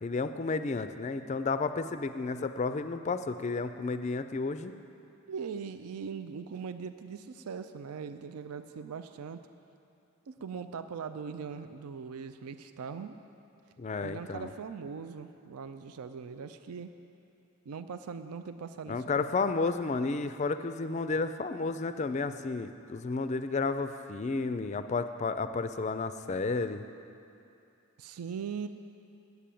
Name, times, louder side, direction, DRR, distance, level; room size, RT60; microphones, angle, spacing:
voice 1, 0.0-4.7 13.8-14.5 18.9-26.8, left 3 dB, 30° left, 10 dB, 0.3 m, -32 dB
voice 2, 5.3-9.4 10.3-13.2 14.0-16.9 17.7-19.5 28.0-28.7, right 6 dB, 85° right, 10 dB, 0.4 m, -40 dB
8.9 x 8.2 x 8.5 m, 2.7 s
head